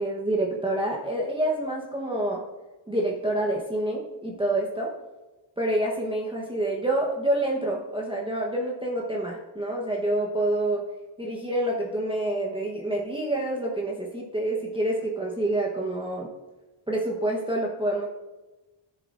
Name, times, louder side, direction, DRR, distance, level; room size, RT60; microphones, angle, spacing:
voice 1, 0.0-2.4 2.9-4.9 5.6-10.9 11.2-16.3 16.9-18.1, right 1 dB, 10° right, -3 dB, 1.0 m, -27 dB
14.5 x 7.0 x 2.5 m, 1.1 s
wide cardioid pair, 110°, 47 cm